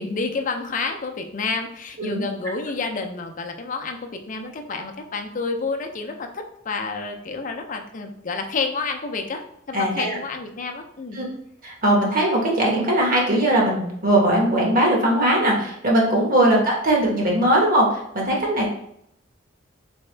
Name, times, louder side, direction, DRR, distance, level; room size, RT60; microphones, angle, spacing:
voice 1, 0.0-11.2 16.3-16.6, left 4 dB, 40° left, 4 dB, 0.5 m, -29 dB
voice 2, 9.7-10.2 11.1-11.3 11.6-18.7, right 1 dB, 45° right, -2 dB, 1.2 m, -20 dB
4.0 x 3.5 x 3.3 m, 0.74 s
head